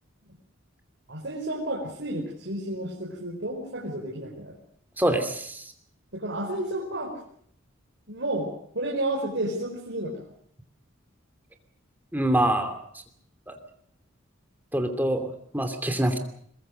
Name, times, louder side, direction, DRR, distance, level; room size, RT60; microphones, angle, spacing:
voice 1, 1.1-4.5 6.1-7.2 8.1-10.2, right 1 dB, 60° right, -2 dB, 4.6 m, -31 dB
voice 2, 5.0-5.6 12.1-12.8 13.5-13.6 14.7-15.3 15.5-16.2, right 1 dB, 10° right, 6 dB, 2.7 m, -25 dB
22.5 x 22.0 x 6.6 m, 0.64 s
head